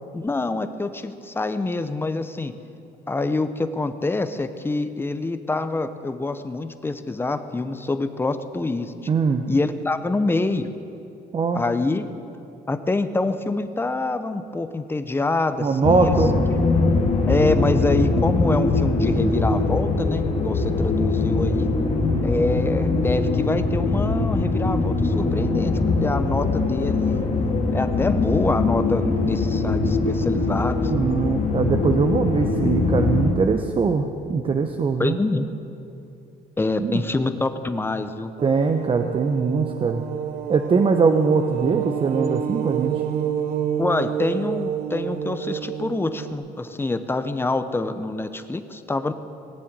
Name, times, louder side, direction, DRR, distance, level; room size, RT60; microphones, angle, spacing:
voice 1, 0.1-2.5 3.1-8.9 9.5-10.7 11.5-12.0 12.7-16.2 16.6-16.7 17.3-21.7 22.2-27.3 27.7-30.8 35.0-35.5 36.6-38.3 43.8-49.1, left 2 dB, 15° left, 10 dB, 0.8 m, -25 dB
voice 2, 9.1-9.4 11.3-11.6 15.6-16.5 30.9-35.2 36.8-37.0 38.4-40.0 40.5-43.0, right 5 dB, 30° right, 5 dB, 0.8 m, -21 dB
sound 1, 15.8-33.3, left 3 dB, 40° left, 2.0 m, -22 dB
sound 2, 38.4-46.3, right 9 dB, 60° right, 0.9 m, -28 dB
18.5 x 7.5 x 9.0 m, 2.7 s
cardioid pair, 110°, 17 cm